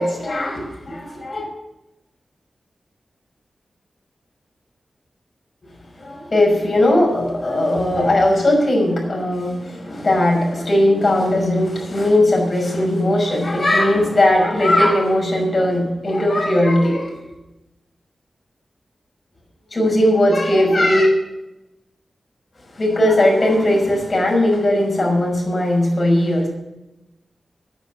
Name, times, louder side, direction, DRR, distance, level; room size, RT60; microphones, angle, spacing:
voice 1, 0.0-1.5 6.0-17.1 19.7-21.1 22.7-26.5, left 1 dB, 45° left, -1 dB, 5.9 m, -18 dB
9.6 x 9.2 x 8.3 m, 0.94 s
cardioid pair, 60°, 0 cm